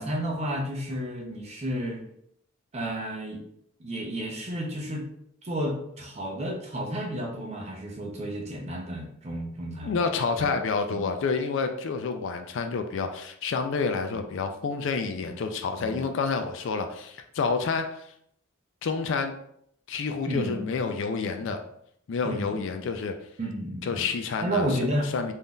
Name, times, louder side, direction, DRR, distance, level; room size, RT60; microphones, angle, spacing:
voice 1, 0.0-2.1 2.7-3.4 3.8-5.1 5.4-10.0 10.4-10.5 10.9-11.1 14.1-14.2 15.8-16.1 20.3-20.6 21.4-21.5 22.2-22.9 23.4-24.1 24.4-25.1, equal, 30° right, 0 dB, 0.5 m, -32 dB
voice 2, 9.8-17.9 18.8-19.3 19.9-21.6 22.1-23.1 23.8-24.8 25.1-25.3, left 4 dB, 55° left, 6 dB, 0.3 m, -29 dB
3.5 x 2.6 x 2.2 m, 0.71 s
head